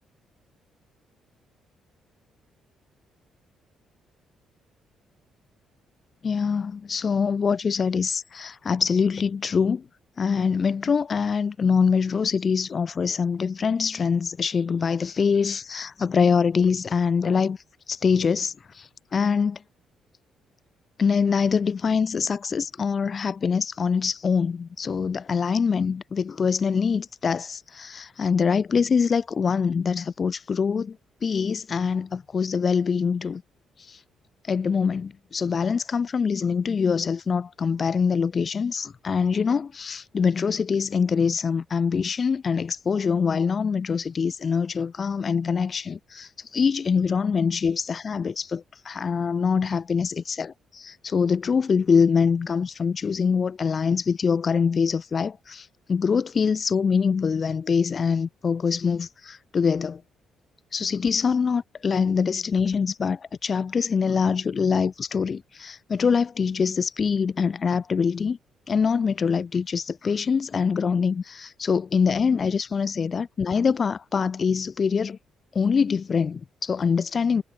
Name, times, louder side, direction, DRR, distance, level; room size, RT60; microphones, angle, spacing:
voice 1, 6.2-9.8 10.2-17.6 17.9-19.6 21.0-31.0 31.2-33.4 33.8-34.0 34.4-60.0 60.7-68.4 68.7-75.2 75.5-77.4, left 6 dB, 40° left, 0.8 m, -24 dB
cardioid pair, 90°, 0 cm